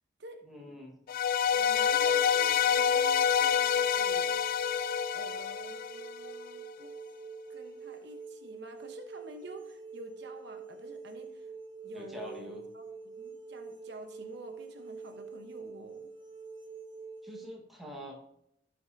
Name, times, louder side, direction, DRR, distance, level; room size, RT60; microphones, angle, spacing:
voice 1, 0.4-1.0 11.9-12.6 17.2-18.2, left 1 dB, ahead, -2 dB, 1.5 m, -45 dB
sound 1, 1.1-6.3, left 8 dB, 50° left, 0.3 m, -27 dB
voice 2, 1.3-4.4 5.1-6.9 7.5-11.5 11.8-16.1, right 2 dB, 65° right, 5 dB, 1.0 m, -49 dB
sound 2, 1.5-17.4, right 4 dB, 25° right, 1.5 m, -46 dB
15.5 x 5.7 x 2.7 m, 0.77 s
head